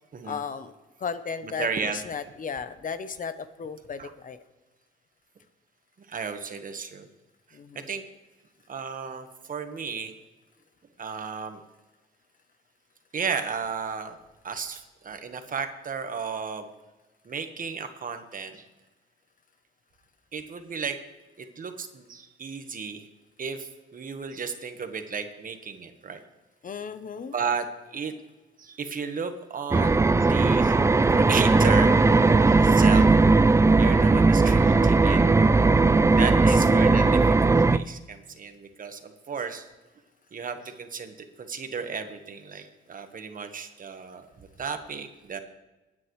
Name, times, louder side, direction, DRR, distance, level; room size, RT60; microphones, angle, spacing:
voice 1, 0.2-0.7 1.0-4.4 7.5-7.9 26.6-27.3 36.5-36.9, left 6 dB, 45° left, 11 dB, 0.9 m, -35 dB
voice 2, 1.4-2.0 4.0-4.1 6.0-7.1 7.7-8.0 8.7-10.1 11.0-11.6 13.1-14.2 14.4-16.7 17.2-18.6 20.3-21.0 21.4-23.1 23.4-26.2 27.3-28.1 28.6-30.8 31.1-32.0 32.5-33.1 33.8-35.2 36.1-39.7 40.3-45.4, right 5 dB, 45° right, 7 dB, 1.4 m, -34 dB
sound 1, 29.7-37.8, right 3 dB, 15° right, 0.4 m, -18 dB
22.0 x 9.5 x 3.2 m, 1.1 s
cardioid pair, 90°, 20 cm